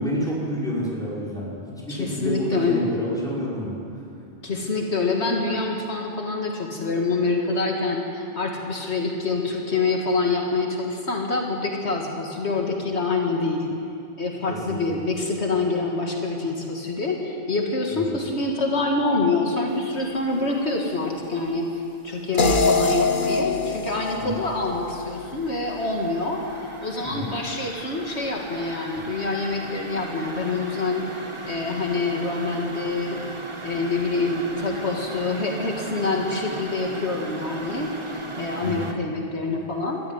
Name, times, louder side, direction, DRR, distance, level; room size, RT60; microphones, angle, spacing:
voice 1, 0.0-1.5 1.9-3.7 14.5-14.9 17.9-18.0 24.1-24.4 27.0-27.3 38.6-38.9, equal, 5° left, -6 dB, 5.8 m, -29 dB
voice 2, 1.9-2.8 4.4-13.7 14.2-26.4 26.8-33.2 33.6-40.0, left 3 dB, 75° left, 0 dB, 2.3 m, -26 dB
sound 1, 19.9-20.3 20.6-22.2 22.5-38.9, right 2 dB, 25° right, 1.3 m, -38 dB
sound 2, 22.4-25.5, left 4 dB, 50° left, 1.2 m, -24 dB
20.0 x 14.0 x 9.6 m, 2.6 s
omnidirectional pair, 1.1 m